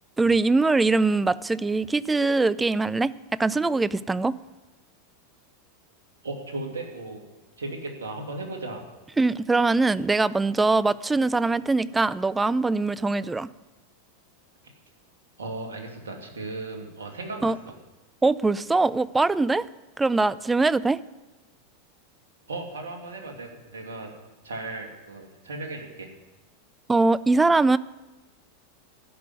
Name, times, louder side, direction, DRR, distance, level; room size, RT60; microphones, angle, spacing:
voice 1, 0.2-3.1 3.4-4.4 9.2-13.5 17.4-17.6 18.2-19.6 20.0-21.0 26.9-27.8, right 3 dB, 10° right, 18 dB, 0.5 m, -22 dB
voice 2, 6.2-7.2 7.6-8.8 15.4-17.7 22.5-24.1 24.4-26.1, right 2 dB, 80° right, 2 dB, 2.6 m, -36 dB
13.5 x 6.1 x 9.6 m, 1.1 s
hypercardioid pair, 90°, 0 cm